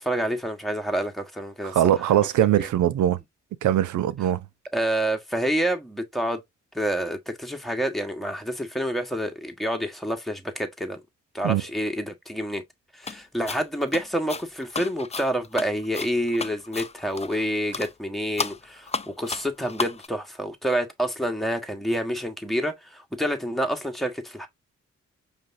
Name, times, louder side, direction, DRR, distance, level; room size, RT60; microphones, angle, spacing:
voice 1, 0.0-2.0 2.6-2.7 4.7-6.4 6.7-11.0 11.3-12.6 12.9-24.5, equal, ahead, 1.3 m, -28 dB
voice 2, 1.6-3.2 3.6-4.4 11.4-11.6, right 11 dB, 75° right, 0.5 m, -21 dB
sound 1, 13.0-13.2 13.5-17.5 17.7-17.9 18.4-20.1, left 4 dB, 20° left, 0.5 m, -33 dB
5.1 x 3.4 x 2.6 m
cardioid pair, 55°, 30 cm